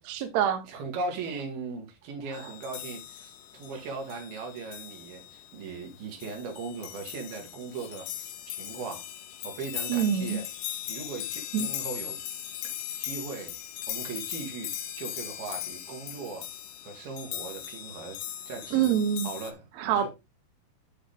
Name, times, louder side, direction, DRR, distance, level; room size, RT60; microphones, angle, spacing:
voice 1, 0.1-0.6 9.9-10.4 11.5-11.7 18.7-19.3 19.8-20.1, right 9 dB, 65° right, 1.9 m, -25 dB
voice 2, 0.6-9.1 9.4-10.5 10.9-12.2 13.0-13.5 13.9-16.5 16.8-18.2 18.5-19.0 19.2-20.1, right 4 dB, 90° right, 3.8 m, -39 dB
sound 1, 2.3-19.5, left 12 dB, 75° left, 2.1 m, -39 dB
11.0 x 3.9 x 3.5 m
omnidirectional pair, 4.2 m